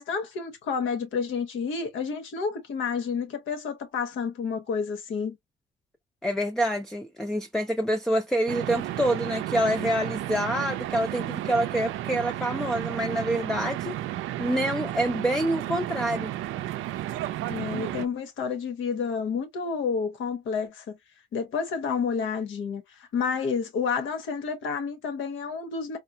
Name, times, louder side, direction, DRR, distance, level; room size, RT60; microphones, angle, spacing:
voice 1, 0.0-5.4 17.5-21.0 21.3-26.0, left 5 dB, 80° left, 1.3 m, -30 dB
voice 2, 6.2-14.0 14.4-16.3, equal, 5° left, 0.4 m, -27 dB
sound 1, 8.5-18.1, right 14 dB, 90° right, 0.4 m, -33 dB
4.3 x 2.0 x 2.7 m
cardioid pair, 90°, 20 cm